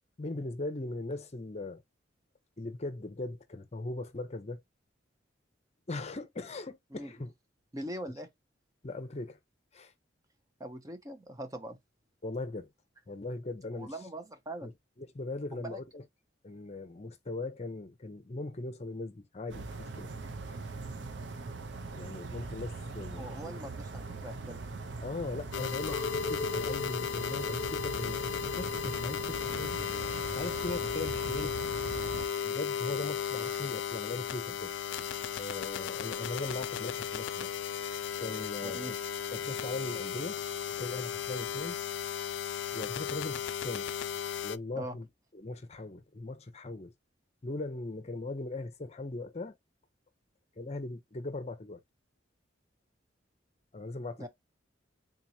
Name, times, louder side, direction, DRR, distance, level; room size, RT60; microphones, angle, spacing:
voice 1, 0.2-1.8 2.6-4.6 5.9-7.3 8.8-9.4 9.7-9.9 12.2-12.7 13.1-13.9 14.6-14.7 15.0-16.0 16.4-20.1 21.9-23.6 25.0-28.2 28.6-29.8 30.3-31.6 32.4-35.1 35.3-37.5 38.2-39.0 39.3-40.4 40.8-41.8 42.7-43.9 44.4-45.1 45.3-46.9 47.4-49.6 50.6-51.8 53.7-54.3, left 2 dB, 35° left, 0.6 m, -39 dB
voice 2, 7.7-8.3 10.6-11.8 13.7-14.7 15.5-15.8 23.1-24.6 38.6-38.9 44.8-45.0 54.2-54.3, right 1 dB, 20° right, 0.6 m, -41 dB
sound 1, 19.5-32.3, right 3 dB, 65° right, 0.5 m, -41 dB
sound 2, 25.5-44.6, left 8 dB, 75° left, 0.3 m, -35 dB
Chink clink, 25.9-30.2 30.5-31.3, left 2 dB, 10° left, 1.0 m, -40 dB
3.8 x 2.9 x 2.6 m
head